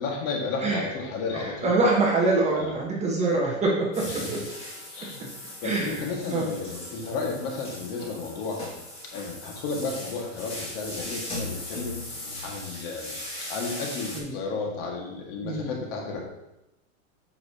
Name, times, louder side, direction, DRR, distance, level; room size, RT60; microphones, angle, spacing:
voice 1, 0.0-1.8 2.5-2.8 4.0-4.3 4.9-5.3 5.6-8.6 9.1-12.0 12.4-13.2 13.5-16.2, left 4 dB, 45° left, 0 dB, 1.9 m, -33 dB
voice 2, 1.3-3.7 4.1-4.4 5.6-6.0 6.3-6.5 14.1-14.4 15.4-15.7, right 3 dB, 15° right, -3 dB, 1.4 m, -25 dB
sound 1, 3.9-14.2, left 1 dB, 15° left, 2.2 m, -38 dB
8.5 x 6.2 x 2.9 m, 0.91 s
supercardioid pair, 150°, 39 cm